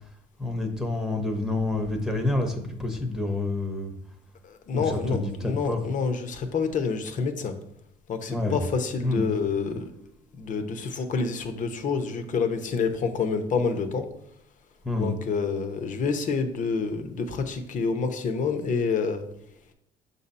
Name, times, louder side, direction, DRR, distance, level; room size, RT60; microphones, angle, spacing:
voice 1, 0.4-3.9 4.7-5.9 8.3-8.6 9.0-9.4 14.8-15.2, left 2 dB, 5° right, 3 dB, 0.8 m, -28 dB
voice 2, 4.4-7.5 8.1-9.9 10.4-14.1 15.0-19.3, left 5 dB, 50° left, 8 dB, 0.8 m, -28 dB
6.4 x 2.7 x 5.3 m, 0.74 s
cardioid pair, 110°, 17 cm